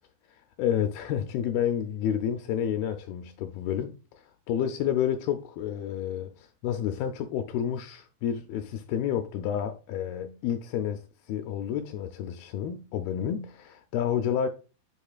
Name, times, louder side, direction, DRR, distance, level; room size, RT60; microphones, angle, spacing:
voice 1, 0.3-14.5, left 9 dB, 80° left, 2.2 m, -30 dB
10.0 x 4.0 x 2.4 m
omnidirectional pair, 4.6 m